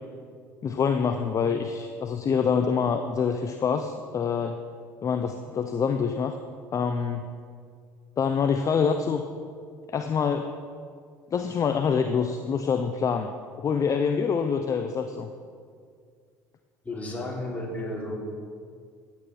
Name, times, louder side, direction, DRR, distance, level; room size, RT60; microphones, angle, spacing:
voice 1, 0.6-4.6 5.0-6.4 6.7-7.3 8.2-9.2 9.9-10.5 11.3-13.3 13.6-15.3, left 6 dB, 35° left, 7 dB, 0.7 m, -26 dB
voice 2, 16.8-18.1, left 1 dB, 15° left, -3 dB, 3.7 m, -33 dB
14.5 x 9.0 x 4.6 m, 2.1 s
hypercardioid pair, 65°, 9 cm